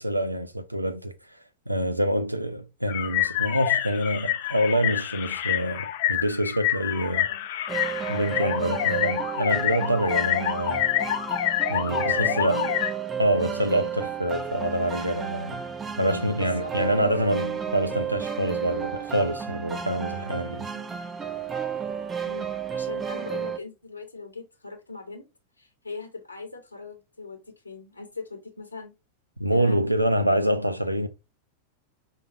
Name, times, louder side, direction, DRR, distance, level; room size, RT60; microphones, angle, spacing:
voice 1, 0.0-1.4 1.7-7.3 8.1-10.8 11.7-12.6 13.2-15.6 16.0-20.7 29.4-31.1, equal, 90° right, 0.4 m, -26 dB
car alarm dying out, 2.9-12.9, left 12 dB, 50° left, 0.4 m, -27 dB
sound 1, 7.7-23.6, right 7 dB, 15° right, 0.4 m, -32 dB
voice 2, 12.0-12.8 16.3-17.3 20.7-21.0 22.2-25.2 25.6-28.9 29.5-29.9, left 3 dB, 80° left, 0.8 m, -40 dB
5.1 x 2.2 x 2.6 m
figure-of-eight pair, 90°, 0 cm